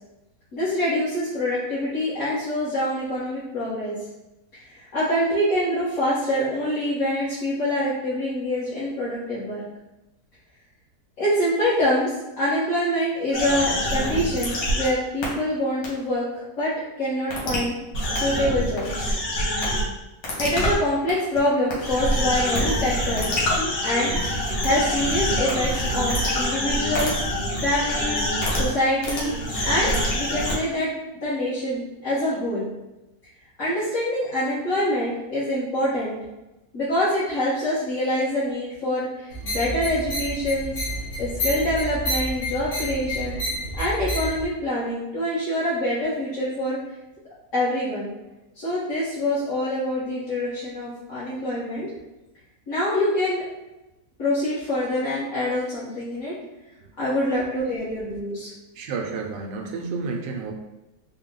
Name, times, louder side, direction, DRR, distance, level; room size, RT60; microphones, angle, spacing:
voice 1, 0.5-3.9 4.5-9.6 11.2-12.1 12.4-16.7 17.0-17.7 18.1-19.2 20.4-23.3 23.8-24.2 24.6-27.2 27.6-28.2 28.5-29.3 29.6-30.9 31.2-32.7 33.6-36.2 36.7-40.7 41.2-43.4 43.8-46.8 47.5-48.1 48.5-51.9 52.7-53.4 54.2-56.3 57.0-58.5, left 1 dB, 50° left, -12 dB, 1.4 m, -25 dB
sound 1, 13.3-14.9 15.2-15.3 15.8-15.9 17.3-17.6 17.9-19.8 20.2-20.7 21.1-21.4 21.7-28.8 29.0-30.5, equal, 90° left, 1.8 m, -25 dB
sound 2, 39.3-44.4, equal, 70° left, 1.9 m, -29 dB
voice 2, 58.7-60.5, right 4 dB, 80° right, 2 dB, 1.2 m, -30 dB
4.0 x 2.2 x 3.7 m, 1.0 s
omnidirectional pair, 1.9 m